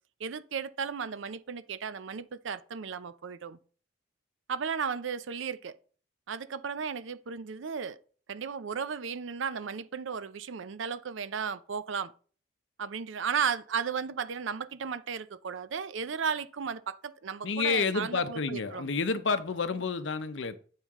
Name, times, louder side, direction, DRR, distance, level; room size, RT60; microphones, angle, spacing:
voice 1, 0.2-3.6 4.5-5.8 6.3-8.0 8.3-12.1 12.8-18.9, right 6 dB, 80° right, 0.5 m, -34 dB
voice 2, 17.4-20.6, left 4 dB, 75° left, 0.7 m, -29 dB
8.9 x 5.6 x 3.6 m
head